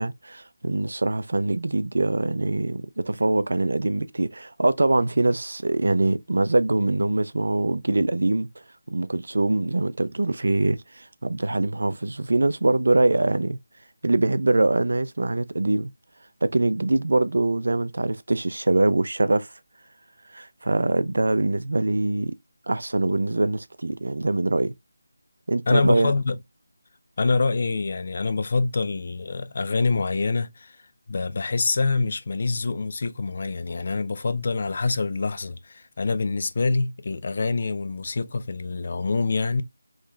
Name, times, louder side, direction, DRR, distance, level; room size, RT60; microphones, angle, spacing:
voice 1, 0.0-8.5 8.9-13.6 14.0-15.9 16.4-19.5 20.3-22.3 22.7-24.7 25.5-26.1, right 2 dB, 70° right, 0.4 m, -23 dB
voice 2, 25.7-26.3 27.2-30.8 31.1-39.6, left 3 dB, 40° left, 0.3 m, -25 dB
3.7 x 3.1 x 2.4 m
figure-of-eight pair, 175°, 0 cm